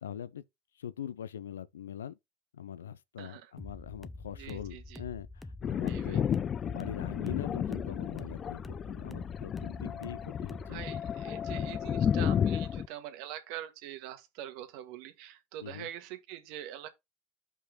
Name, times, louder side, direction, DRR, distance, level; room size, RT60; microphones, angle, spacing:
voice 1, 0.0-0.4 0.8-2.2 2.5-6.3 6.6-10.8 15.6-15.9, left 9 dB, 85° left, 0.5 m, -42 dB
voice 2, 3.2-3.5 4.3-5.0 5.8-6.2 10.7-16.9, right 12 dB, 65° right, 1.6 m, -44 dB
sound 1, 3.6-11.0, left 2 dB, 10° left, 0.8 m, -46 dB
Thunder, 5.6-12.9, left 8 dB, 40° left, 0.5 m, -32 dB
5.6 x 4.7 x 5.8 m
hypercardioid pair, 70°, 0 cm